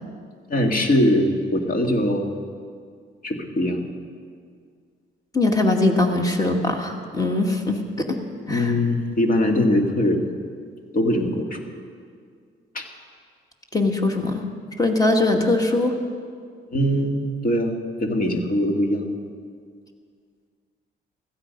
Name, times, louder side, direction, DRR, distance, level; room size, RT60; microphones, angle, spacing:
voice 1, 0.5-2.4 3.2-3.8 8.5-10.3 10.9-11.6 12.7-12.9 16.7-19.1, left 1 dB, 45° left, 3 dB, 2.1 m, -22 dB
voice 2, 5.3-8.2 8.5-8.8 13.7-14.4 14.8-16.0, left 2 dB, 20° left, 3 dB, 2.1 m, -21 dB
16.0 x 14.0 x 5.3 m, 2.1 s
cardioid pair, 90°, 20 cm